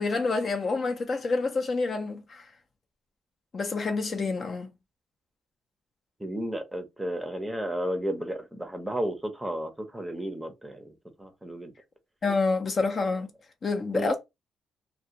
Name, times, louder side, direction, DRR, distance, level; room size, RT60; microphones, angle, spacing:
voice 1, 0.0-2.5 3.5-4.7 12.2-13.3 13.6-14.2, left 3 dB, 40° left, 0.6 m, -28 dB
voice 2, 6.2-10.9 11.2-11.7 13.9-14.1, right 1 dB, 10° right, 0.7 m, -33 dB
2.3 x 2.1 x 2.8 m
cardioid pair, 90°, 0 cm